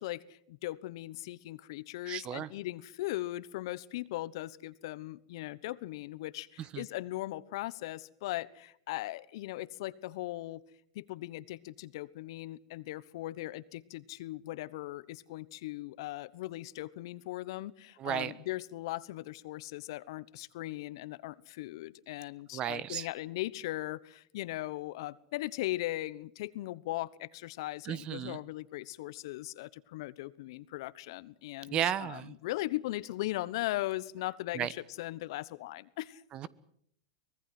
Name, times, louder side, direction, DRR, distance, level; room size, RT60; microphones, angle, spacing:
voice 1, 0.0-10.6 10.9-36.2, left 17 dB, 65° left, 17 dB, 1.1 m, -39 dB
voice 2, 2.1-2.5 6.7-6.8 18.0-18.3 22.5-23.1 27.9-28.4 31.7-32.3 34.5-34.7 36.3-36.5, right 10 dB, 35° right, 19 dB, 1.2 m, -33 dB
24.0 x 19.5 x 7.8 m, 0.66 s
hypercardioid pair, 110°, 3 cm